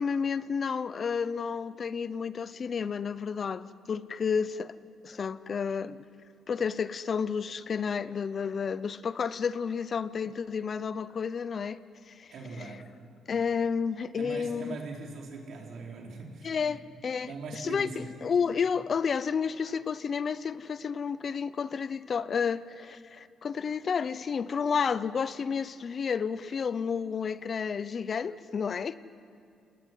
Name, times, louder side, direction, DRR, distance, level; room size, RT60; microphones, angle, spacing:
voice 1, 0.0-4.7 5.0-6.0 6.5-11.8 12.2-12.3 12.6-12.8 13.3-14.8 16.4-28.9, left 6 dB, 45° left, 0.8 m, -31 dB
voice 2, 12.3-12.9 14.1-16.8 17.2-18.1, right 4 dB, 65° right, 4.9 m, -41 dB
29.0 x 19.0 x 9.5 m
cardioid pair, 90°, 0 cm